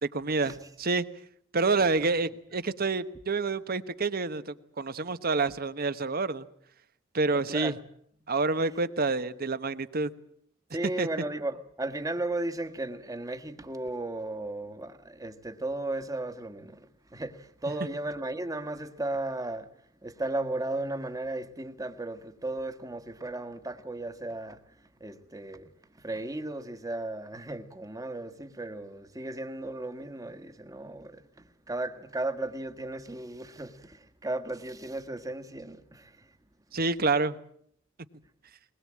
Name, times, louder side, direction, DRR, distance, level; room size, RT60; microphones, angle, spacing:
voice 1, 0.0-1.0 1.5-6.5 7.1-7.7 8.3-10.1 11.0-11.1 36.7-37.4, right 3 dB, 50° right, 1.1 m, -28 dB
voice 2, 7.3-7.8 10.7-19.7 20.0-36.3, right 2 dB, 20° right, 1.5 m, -35 dB
21.0 x 20.5 x 8.6 m
head